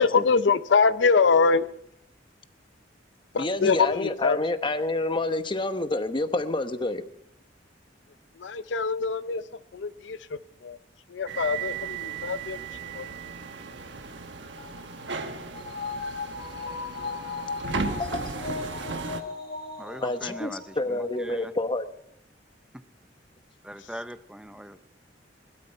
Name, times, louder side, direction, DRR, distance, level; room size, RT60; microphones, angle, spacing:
voice 1, 0.0-1.7 3.3-4.4 8.4-9.4 9.7-10.8 11.1-12.6 12.9-13.1, left 5 dB, 90° left, 0.6 m, -24 dB
voice 2, 3.4-7.0 18.0-18.4 20.0-20.5 20.8-21.9, left 2 dB, 25° left, 0.9 m, -28 dB
sound 1, 11.3-19.2, right 4 dB, 80° right, 1.2 m, -35 dB
sound 2, 14.6-21.2 21.6-21.7, left 4 dB, 60° left, 1.9 m, -37 dB
voice 3, 19.8-21.5 23.6-24.8, equal, 5° right, 0.6 m, -40 dB
21.0 x 12.5 x 4.5 m
head